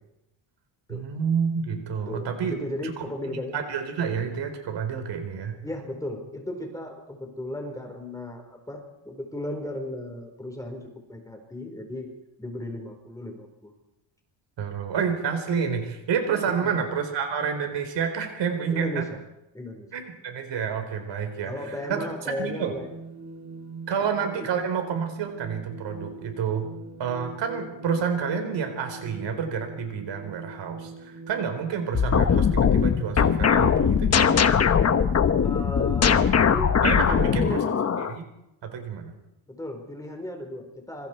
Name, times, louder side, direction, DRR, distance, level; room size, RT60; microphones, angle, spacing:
voice 1, 0.9-2.6 2.8-3.1 3.5-5.6 14.6-19.0 19.9-22.1 22.4-22.7 23.9-26.7 27.0-34.5 36.8-38.2 38.6-39.1, right 6 dB, 65° right, 6 dB, 4.4 m, -29 dB
voice 2, 2.1-3.6 5.6-8.8 9.0-12.1 12.4-13.7 16.5-16.7 18.7-19.2 19.5-19.9 21.4-22.9 24.0-24.1 24.4-24.5 35.4-36.7 37.1-38.0 39.5-41.1, left 1 dB, 5° left, 3 dB, 4.5 m, -35 dB
sound 1, 21.5-33.1, right 3 dB, 45° right, 2.9 m, -43 dB
sound 2, 31.9-38.1, left 7 dB, 35° left, 1.1 m, -21 dB
26.5 x 25.0 x 4.6 m, 0.89 s
cardioid pair, 155°, 46 cm